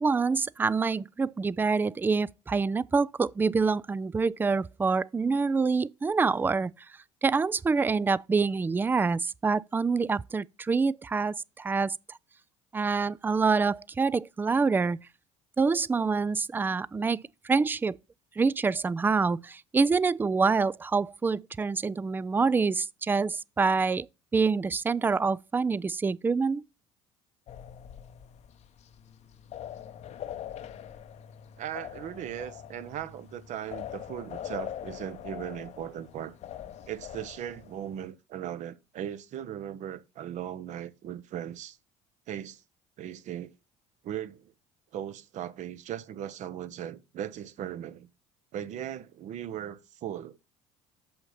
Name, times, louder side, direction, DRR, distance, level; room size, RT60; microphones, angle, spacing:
voice 1, 0.0-6.7 7.2-11.9 12.7-15.0 15.6-18.0 18.4-24.1 24.3-26.6, right 4 dB, 15° right, 0.3 m, -26 dB
sound 1, 27.5-38.1, left 10 dB, 45° left, 0.8 m, -43 dB
voice 2, 31.6-36.4 36.8-41.8 42.3-42.6 43.0-43.5 44.0-44.5 44.9-48.1 48.5-50.4, right 10 dB, 50° right, 0.8 m, -38 dB
6.8 x 5.7 x 5.6 m
hypercardioid pair, 65°, 16 cm